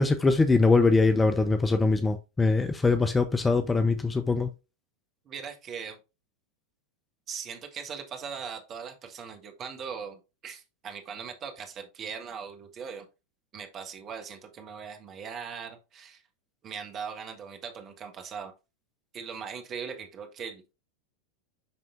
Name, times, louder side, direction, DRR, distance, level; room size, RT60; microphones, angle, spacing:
voice 1, 0.0-4.5, left 3 dB, 10° left, 0.5 m, -22 dB
voice 2, 5.2-6.0 7.3-13.0 13.5-16.2 16.6-18.5 19.1-20.6, right 6 dB, 30° right, 1.4 m, -40 dB
10.5 x 3.6 x 2.5 m
figure-of-eight pair, 90°, 0 cm